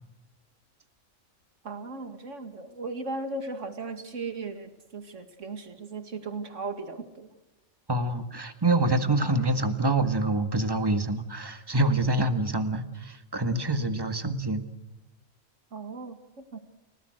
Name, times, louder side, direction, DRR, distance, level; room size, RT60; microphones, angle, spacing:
voice 1, 1.6-7.3 15.7-16.6, right 3 dB, 70° right, 7 dB, 2.5 m, -37 dB
voice 2, 7.9-14.6, right 2 dB, 20° right, 8 dB, 1.8 m, -26 dB
30.0 x 18.5 x 6.5 m, 1.0 s
omnidirectional pair, 1.3 m